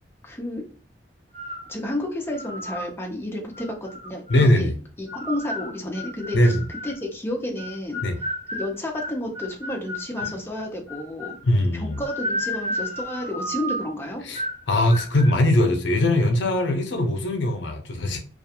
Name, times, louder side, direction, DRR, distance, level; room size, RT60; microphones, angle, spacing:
voice 1, 0.2-0.6 1.7-4.7 5.0-6.5 6.8-8.0 8.5-11.3 11.7-14.2, left 1 dB, 15° left, 0.5 m, -31 dB
sound 1, 1.3-1.7 2.3-2.9 3.5-4.5 5.1-7.0 7.6-10.4 10.9-11.4 11.9-13.9 14.3-14.6 14.9-15.3, equal, 40° right, 1.1 m, -33 dB
voice 2, 4.3-4.8 6.3-6.6 8.0-8.2 10.2-10.3 11.4-12.0 14.2-18.2, left 1 dB, 80° left, 0.5 m, -21 dB
2.3 x 2.2 x 2.8 m
head